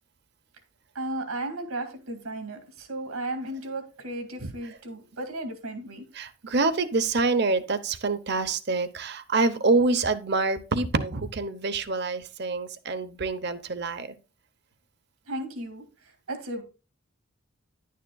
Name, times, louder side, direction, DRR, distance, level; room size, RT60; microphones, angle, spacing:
voice 1, 0.9-6.1 15.3-16.6, right 1 dB, 90° right, 2.2 m, -35 dB
voice 2, 6.2-14.1, right 3 dB, 50° right, 0.8 m, -26 dB
11.0 x 9.4 x 2.3 m
head